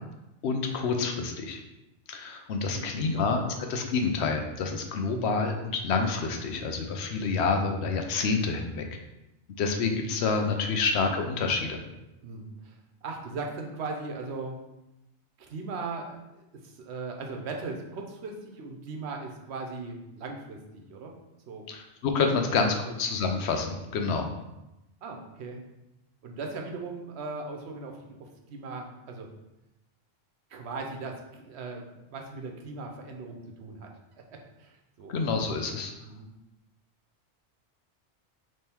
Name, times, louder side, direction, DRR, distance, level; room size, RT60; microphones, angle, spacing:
voice 1, 0.4-1.6 2.1-3.4 3.7-9.0 9.6-11.8 21.7-24.3 35.1-35.9, left 4 dB, 75° left, 4 dB, 0.9 m, -28 dB
voice 2, 2.7-3.6 5.1-5.3 10.6-10.8 12.2-12.8 13.0-14.6 15.4-21.1 21.5-21.6 22.4-22.6 22.9-23.0 24.0-24.1 25.0-25.6 26.2-29.3 30.5-33.9 34.3-35.1 36.0-36.3, right 3 dB, 70° right, 2 dB, 1.0 m, -39 dB
3.6 x 3.2 x 4.3 m, 0.93 s
omnidirectional pair, 1.2 m